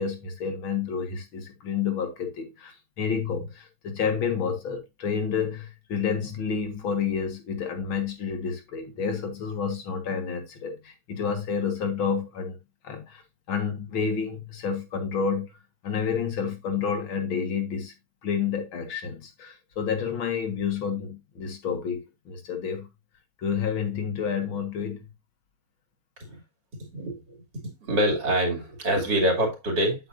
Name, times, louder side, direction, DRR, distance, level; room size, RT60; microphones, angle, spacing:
voice 1, 0.0-12.6 12.8-13.2 13.5-15.5 15.8-17.9 18.2-22.9 23.4-25.1, left 6 dB, 75° left, 2.4 m, -29 dB
voice 2, 27.8-30.1, right 1 dB, 55° right, 3.1 m, -25 dB
8.4 x 7.8 x 2.6 m
omnidirectional pair, 2.2 m